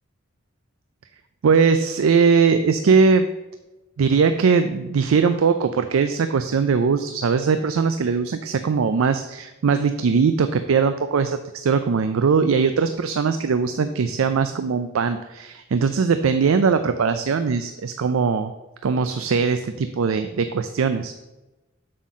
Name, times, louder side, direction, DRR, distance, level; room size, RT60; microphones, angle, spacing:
voice 1, 1.4-3.3 4.0-18.5 18.8-21.1, right 5 dB, 85° right, 10 dB, 0.4 m, -20 dB
7.6 x 4.2 x 6.1 m, 1.0 s
head